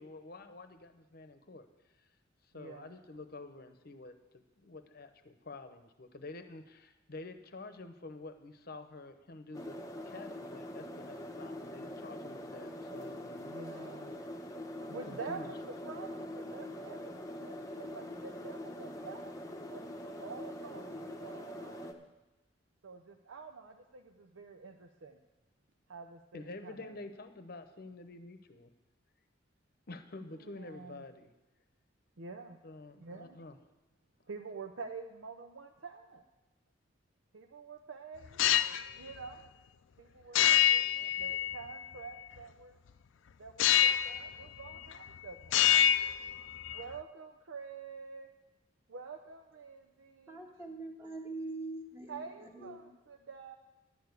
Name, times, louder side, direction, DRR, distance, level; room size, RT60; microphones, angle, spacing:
voice 1, 0.0-1.7 2.5-9.8 10.1-13.5 14.8-15.6 26.3-28.7 29.9-31.3 32.6-33.6, left 2 dB, 50° left, 9 dB, 0.9 m, -48 dB
voice 2, 2.5-2.9 13.4-14.2 14.9-15.6 15.8-19.4 19.7-22.0 22.8-25.2 25.9-27.0 30.3-31.1 32.2-32.6 33.0-33.4 34.3-36.2 37.3-38.5 39.0-39.5 40.0-42.8 43.4-45.9 46.7-48.3 48.9-50.4 52.1-53.5, right 4 dB, 80° right, 4 dB, 0.6 m, -48 dB
sound 1, 9.5-21.9, left 1 dB, 15° left, 0.8 m, -43 dB
sound 2, 38.2-38.9 40.3-41.8 43.6-44.3 44.6-45.2 45.4-46.8, left 11 dB, 75° left, 0.4 m, -26 dB
voice 3, 50.3-52.2 52.5-52.9, right 2 dB, 10° right, -1 dB, 1.5 m, -43 dB
11.0 x 6.9 x 8.2 m, 1.0 s
head